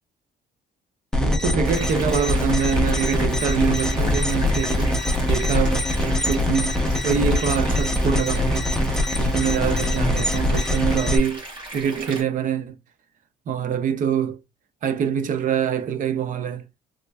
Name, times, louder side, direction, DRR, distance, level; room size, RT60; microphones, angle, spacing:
sound 1, 1.1-11.2, left 1 dB, 5° left, 0.8 m, -22 dB
voice 1, 1.2-6.8 7.0-8.7 9.2-12.8 13.5-14.4 14.8-16.6, right 7 dB, 50° right, 0.5 m, -25 dB
sound 2, 1.6-12.2, right 1 dB, 30° right, 2.3 m, -37 dB
3.7 x 3.1 x 2.2 m
cardioid pair, 110°, 17 cm